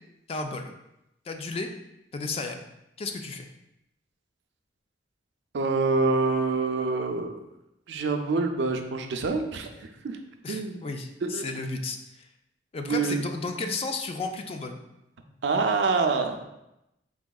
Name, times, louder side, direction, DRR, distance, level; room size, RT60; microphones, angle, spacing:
voice 1, 0.3-0.7 1.3-1.7 2.1-2.7 3.0-3.5 10.4-12.3 12.7-14.8, left 3 dB, 35° left, 5 dB, 0.3 m, -33 dB
voice 2, 5.5-7.4 7.9-10.2 10.5-10.8 11.2-11.4 12.8-13.2 15.4-16.5, right 4 dB, 75° right, 5 dB, 0.4 m, -26 dB
4.8 x 3.5 x 2.3 m, 0.88 s
head